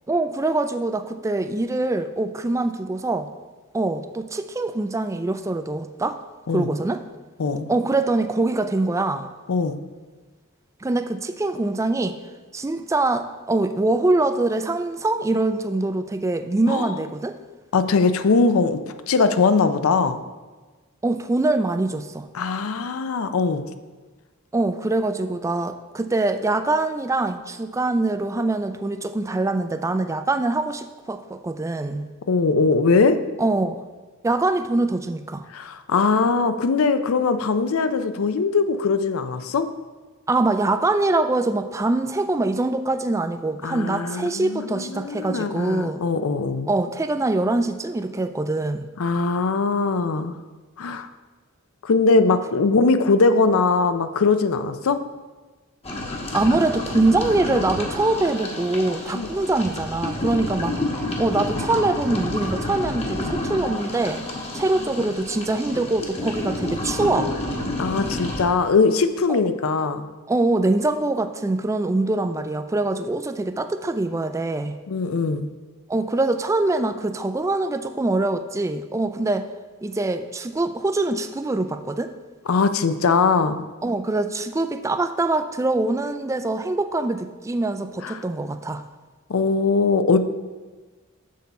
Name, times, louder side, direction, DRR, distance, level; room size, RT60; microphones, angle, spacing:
voice 1, 0.1-3.3 3.7-6.2 6.5-7.0 7.7-9.3 10.8-12.2 12.5-17.4 21.0-22.3 24.5-32.1 33.4-33.8 34.2-35.5 40.3-46.0 46.7-48.9 56.3-60.8 61.2-64.2 64.5-67.4 69.3-69.4 70.3-74.8 75.9-79.5 79.8-82.1 83.8-88.8, right 2 dB, 15° right, 9 dB, 0.3 m, -23 dB
voice 2, 7.4-7.7 9.5-9.8 16.7-17.0 17.7-20.2 22.3-23.7 32.3-33.2 35.5-39.7 43.6-46.7 49.0-50.4 50.8-51.1 51.8-55.0 59.1-59.3 67.8-70.1 74.9-75.5 82.5-83.6 88.0-88.2 89.3-90.2, left 4 dB, 75° left, 10 dB, 0.5 m, -21 dB
sound 1, 55.8-68.5, left 1 dB, 30° left, 1.1 m, -29 dB
6.8 x 6.5 x 4.1 m, 1.3 s
head